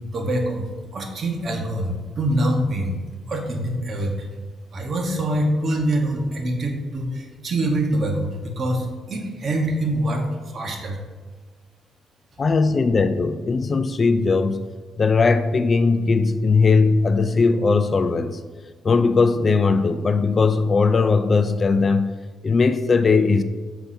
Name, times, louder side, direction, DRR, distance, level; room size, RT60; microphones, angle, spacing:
voice 1, 0.1-0.6 0.9-3.0 3.3-4.3 4.7-10.2 10.5-11.0, right 1 dB, 45° right, 3 dB, 1.1 m, -24 dB
voice 2, 12.4-14.6 15.0-18.4 18.8-22.1 22.4-23.4, left 4 dB, 35° left, 11 dB, 0.3 m, -19 dB
6.9 x 5.6 x 2.7 m, 1.4 s
cardioid pair, 90°, 0 cm